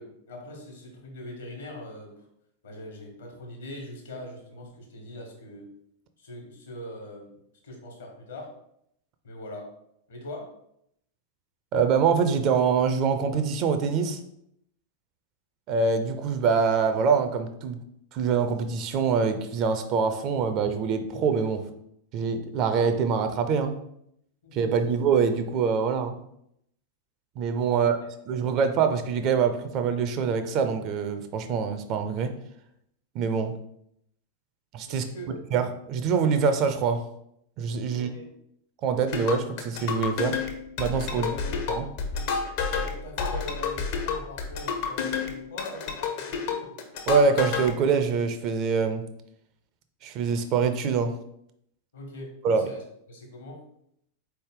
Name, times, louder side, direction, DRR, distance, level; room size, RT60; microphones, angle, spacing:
voice 1, 0.0-2.2 2.6-5.7 6.2-7.4 7.6-8.5 9.2-9.7 10.1-10.5 24.4-24.9 27.7-28.1 34.9-35.4 37.9-38.3 41.1-41.7 42.1-46.8 51.9-52.8 53.1-53.7, left 1 dB, 65° left, 2 dB, 1.3 m, -41 dB
voice 2, 11.7-14.2 15.7-17.8 18.1-21.6 22.1-23.8 24.5-26.2 27.4-28.0 28.3-32.3 33.1-33.5 34.7-35.0 35.5-37.1 37.6-38.1 38.8-40.4 40.8-41.3 41.7-41.9 47.1-49.0 50.0-51.1 52.4-52.6, right 6 dB, 40° right, 9 dB, 0.5 m, -24 dB
sound 1, 39.1-47.7, left 6 dB, 50° left, 0.7 m, -30 dB
4.0 x 3.3 x 3.7 m, 0.74 s
figure-of-eight pair, 90°, 0 cm